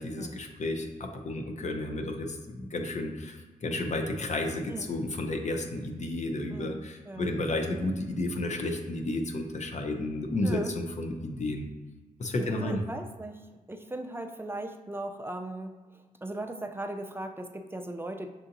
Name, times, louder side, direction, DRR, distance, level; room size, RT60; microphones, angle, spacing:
voice 1, 0.0-11.7 12.2-12.8, left 2 dB, 55° left, 3 dB, 0.6 m, -32 dB
voice 2, 6.5-7.3 10.4-10.7 12.4-13.4 13.7-15.7 16.2-18.3, right 1 dB, 15° right, 5 dB, 0.4 m, -38 dB
6.8 x 2.7 x 2.6 m, 1.3 s
cardioid pair, 75°, 15 cm